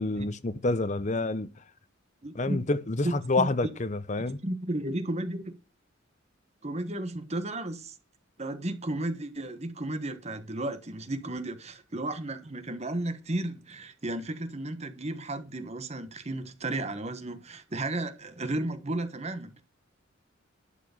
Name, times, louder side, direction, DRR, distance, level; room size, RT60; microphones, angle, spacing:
voice 1, 0.0-1.5 2.3-4.4, left 2 dB, 35° left, 0.8 m, -28 dB
voice 2, 2.2-2.6 3.0-3.5 4.4-5.6 6.6-7.9 8.4-19.6, right 1 dB, 35° right, 1.3 m, -33 dB
11.5 x 4.9 x 7.0 m
head